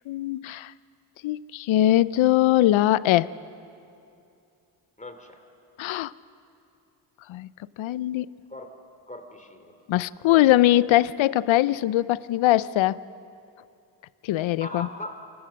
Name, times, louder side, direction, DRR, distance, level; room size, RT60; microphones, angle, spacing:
voice 1, 0.1-0.7 1.2-3.3 5.8-6.1 7.3-7.5 7.8-8.3 9.9-13.0 14.2-14.9, left 14 dB, 70° left, 19 dB, 0.6 m, -21 dB
voice 2, 5.0-5.4 8.5-8.8 9.1-9.8 14.6-15.2, left 1 dB, 15° left, 6 dB, 2.8 m, -39 dB
28.0 x 15.0 x 6.4 m, 2.6 s
supercardioid pair, 55°, 50 cm